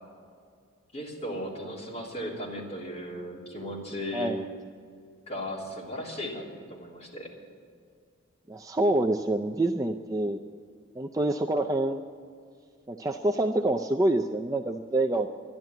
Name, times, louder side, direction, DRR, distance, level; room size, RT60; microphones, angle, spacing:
voice 1, 0.9-4.3 5.3-7.3, equal, 30° left, -4 dB, 3.2 m, -36 dB
voice 2, 8.5-10.4 11.0-12.0 12.9-15.3, right 1 dB, 15° right, 4 dB, 0.4 m, -26 dB
12.5 x 10.5 x 9.0 m, 2.2 s
head